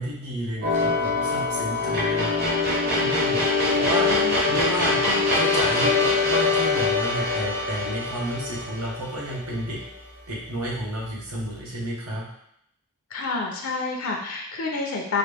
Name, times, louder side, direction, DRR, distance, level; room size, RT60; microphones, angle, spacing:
voice 1, 0.0-4.2 4.5-5.0 5.3-9.8 10.3-12.2, right 1 dB, 80° right, -4 dB, 1.2 m, -31 dB
sound 1, 0.6-9.9, left 3 dB, 45° right, 1.0 m, -23 dB
voice 2, 4.0-4.4 5.0-5.2 13.1-15.2, left 4 dB, 65° left, 0 dB, 0.6 m, -29 dB
4.1 x 2.6 x 3.4 m, 0.73 s
head